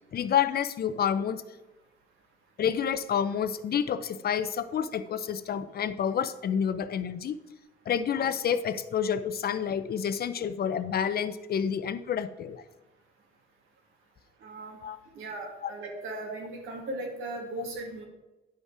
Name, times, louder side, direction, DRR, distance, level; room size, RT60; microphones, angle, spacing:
voice 1, 0.1-1.4 2.6-7.4 7.9-12.6 14.8-15.0 15.6-15.7 17.5-17.7, left 8 dB, 50° left, 13 dB, 0.6 m, -29 dB
voice 2, 14.4-14.8 15.1-18.0, right 2 dB, 85° right, 0 dB, 2.5 m, -37 dB
10.0 x 5.4 x 4.9 m, 1.1 s
cardioid pair, 90°, 20 cm